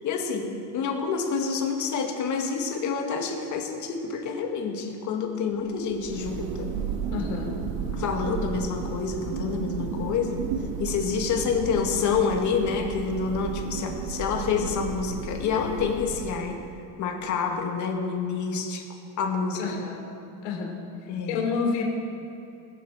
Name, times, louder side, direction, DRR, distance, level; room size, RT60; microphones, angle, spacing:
voice 1, 0.0-6.7 8.0-10.4 10.8-16.6 17.0-18.8 19.2-19.6 21.1-21.4, left 5 dB, 35° left, 2 dB, 2.0 m, -28 dB
Thunder, 5.7-16.7, right 6 dB, 60° right, 1.7 m, -33 dB
voice 2, 7.1-7.6 19.5-20.1 20.4-20.8 21.3-21.8, left 5 dB, 75° left, 1 dB, 3.2 m, -29 dB
20.5 x 8.3 x 6.7 m, 2.9 s
supercardioid pair, 155°, 49 cm